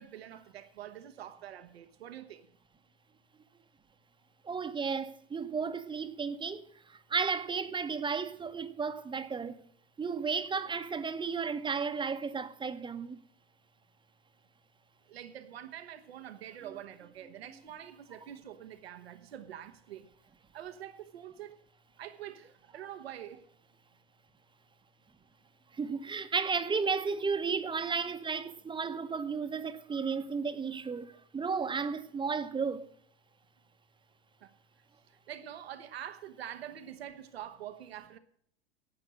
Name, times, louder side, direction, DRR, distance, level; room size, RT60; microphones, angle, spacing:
voice 1, 0.0-2.5 15.1-20.1 20.5-21.6 22.0-23.4 34.4-34.5 35.3-38.2, right 11 dB, 75° right, 1.0 m, -45 dB
voice 2, 4.4-9.6 10.0-13.2 25.7-32.9, right 5 dB, 15° right, 0.9 m, -33 dB
12.0 x 8.7 x 6.2 m
hypercardioid pair, 90°, 31 cm